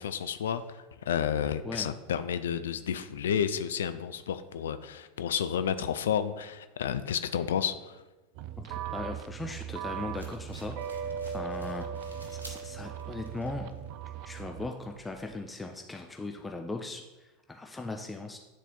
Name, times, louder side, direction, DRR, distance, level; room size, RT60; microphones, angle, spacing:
voice 1, 0.0-8.0, left 8 dB, 65° left, 11 dB, 0.3 m, -31 dB
sound 1, 8.3-14.7, right 8 dB, 50° right, 0.4 m, -38 dB
voice 2, 8.6-11.9 12.3-13.7 14.2-18.4, left 2 dB, 10° left, 3 dB, 0.5 m, -39 dB
sound 2, 10.1-15.4, right 1 dB, 85° right, 1.1 m, -54 dB
9.2 x 4.1 x 3.8 m, 1.1 s
figure-of-eight pair, 85°, 0 cm